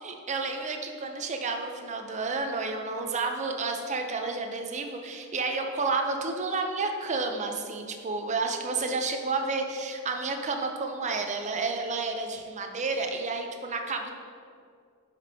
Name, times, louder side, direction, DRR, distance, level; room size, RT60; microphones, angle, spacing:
voice 1, 0.0-14.1, right 3 dB, 30° right, 4 dB, 0.5 m, -31 dB
10.0 x 5.2 x 2.8 m, 2.4 s
head